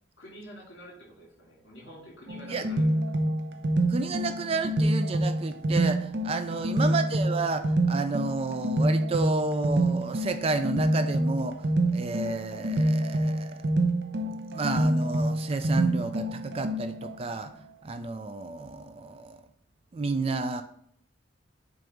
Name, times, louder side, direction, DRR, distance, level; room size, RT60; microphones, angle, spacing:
voice 1, 0.2-3.2 6.4-6.9, equal, 60° left, -2 dB, 2.5 m, -48 dB
sound 1, 2.3-17.1, right 1 dB, 55° right, 0.7 m, -27 dB
voice 2, 3.9-13.6 14.5-17.5 17.8-19.4 19.9-20.6, right 3 dB, 30° right, 9 dB, 0.3 m, -31 dB
7.6 x 2.7 x 4.9 m, 0.65 s
head